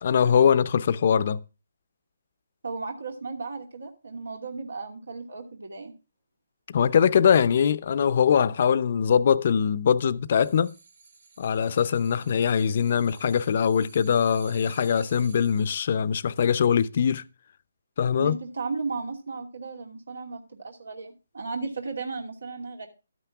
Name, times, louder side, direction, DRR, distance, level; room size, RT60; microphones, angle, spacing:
voice 1, 0.0-1.4 6.7-10.7 11.4-17.2 18.0-18.4, left 7 dB, 50° left, 0.6 m, -22 dB
voice 2, 2.6-5.9 18.2-22.9, right 4 dB, 85° right, 2.6 m, -35 dB
sound 1, 10.3-15.9 16.2-16.3, right 4 dB, 60° right, 5.3 m, -51 dB
12.5 x 9.2 x 3.5 m
hypercardioid pair, 155°, 0 cm